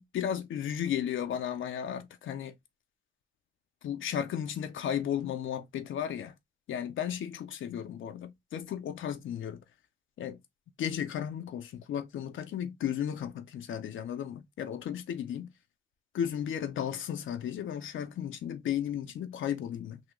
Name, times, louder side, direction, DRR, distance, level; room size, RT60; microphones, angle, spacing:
voice 1, 0.0-2.6 3.8-6.4 6.7-9.6 10.2-10.4 10.8-15.5 16.1-20.0, left 9 dB, 85° left, 0.4 m, -34 dB
3.6 x 2.2 x 2.9 m
cardioid pair, 60°, 20 cm